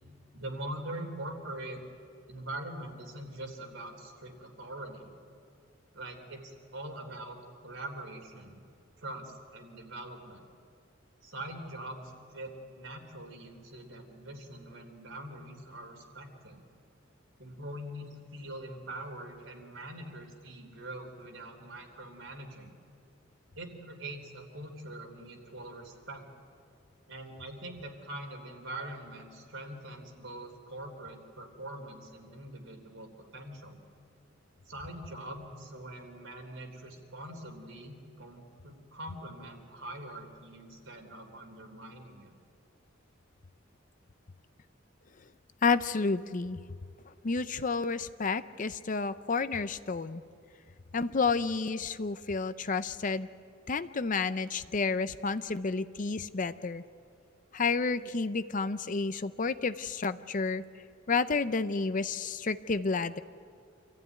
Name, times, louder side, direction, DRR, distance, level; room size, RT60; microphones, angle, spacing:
voice 1, 0.3-1.8 2.3-5.1 5.9-8.6 9.0-10.5 11.2-16.6 17.4-22.7 23.6-26.3 27.1-33.8 34.7-42.3, right 1 dB, 80° right, 3 dB, 3.5 m, -43 dB
voice 2, 45.6-46.6 47.2-50.2 50.9-53.3 53.7-56.8 57.5-60.6 61.1-63.2, left 4 dB, 40° left, 12 dB, 0.6 m, -30 dB
27.0 x 15.0 x 9.4 m, 2.4 s
head